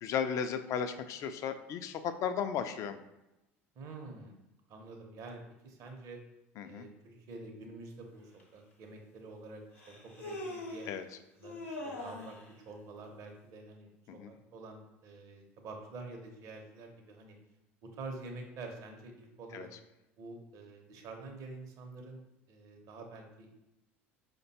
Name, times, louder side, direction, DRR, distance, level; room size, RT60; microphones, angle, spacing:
voice 1, 0.0-3.0 6.6-6.9 10.9-11.0 14.1-14.3 19.5-19.7, left 7 dB, 50° left, 9 dB, 0.3 m, -35 dB
voice 2, 3.8-4.3 4.7-6.2 6.6-9.6 10.0-10.9 11.3-12.4 12.7-17.4 17.8-19.7 20.2-22.2 22.5-23.5, right 3 dB, 55° right, 2 dB, 0.6 m, -47 dB
Human voice, 8.4-8.5 9.8-11.0 11.4-12.4, left 2 dB, 90° left, 0.7 m, -42 dB
4.9 x 2.2 x 2.7 m, 0.93 s
hypercardioid pair, 70°, 7 cm